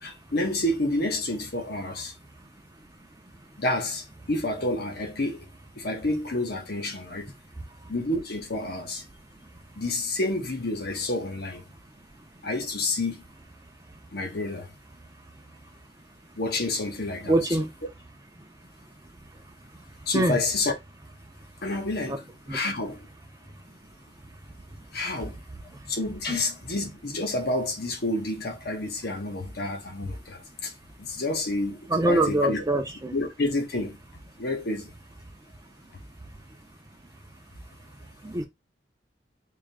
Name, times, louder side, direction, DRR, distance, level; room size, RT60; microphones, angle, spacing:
voice 1, 0.0-2.1 3.6-5.4 5.8-7.3 7.9-9.0 9.8-11.6 12.4-13.2 14.1-14.7 16.4-17.3 20.1-20.7 21.6-22.2 22.5-23.0 24.9-25.4 25.9-30.7 31.0-31.8 32.1-32.6 33.1-34.0 34.4-34.9, left 2 dB, 60° left, 1.1 m, -29 dB
voice 2, 17.3-17.7 20.1-20.4 22.1-22.2 22.5-22.6 26.3-26.4 31.9-33.1 38.2-38.4, right 1 dB, 20° right, 0.6 m, -24 dB
3.7 x 2.8 x 3.3 m
head